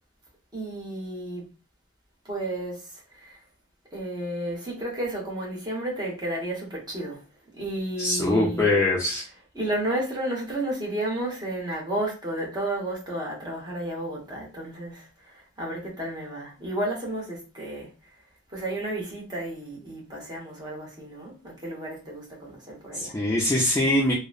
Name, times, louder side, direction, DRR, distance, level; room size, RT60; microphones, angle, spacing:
voice 1, 0.5-1.5 2.2-3.4 3.9-7.3 7.5-8.8 9.1-18.2 18.5-23.2, right 1 dB, 20° right, 0.9 m, -32 dB
voice 2, 8.0-9.2 22.9-24.1, left 1 dB, 10° left, 0.4 m, -23 dB
2.8 x 2.0 x 2.3 m
head